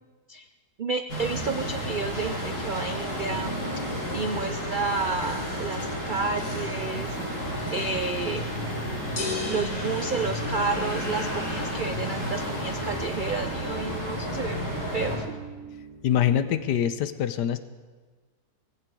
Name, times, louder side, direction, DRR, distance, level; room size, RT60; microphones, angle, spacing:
voice 1, 0.8-3.6 4.1-7.2 7.7-8.4 9.5-15.4, right 4 dB, 80° right, 9 dB, 0.4 m, -31 dB
sound 1, 1.1-15.2, equal, 65° left, 6.4 m, -31 dB
sound 2, 1.2-16.7, right 3 dB, 50° right, 6.1 m, -44 dB
sound 3, 9.2-11.2, left 4 dB, 25° left, 1.4 m, -35 dB
voice 2, 16.0-17.6, left 10 dB, 90° left, 12 dB, 1.4 m, -24 dB
19.5 x 15.5 x 4.7 m, 1.4 s
omnidirectional pair, 1.8 m